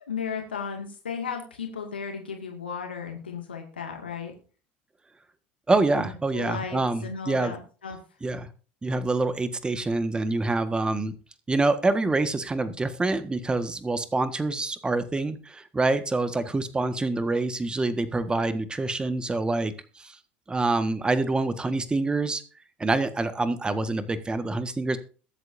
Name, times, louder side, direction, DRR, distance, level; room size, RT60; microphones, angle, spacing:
voice 1, 0.1-4.3 5.9-8.0, left 6 dB, 90° left, 2 dB, 2.2 m, -35 dB
voice 2, 5.7-7.5 8.2-8.5 8.8-11.1 11.5-20.1 20.5-22.4 22.8-25.0, right 2 dB, 15° right, 10 dB, 1.6 m, -26 dB
21.5 x 8.2 x 2.7 m, 0.39 s
hypercardioid pair, 75°, 5 cm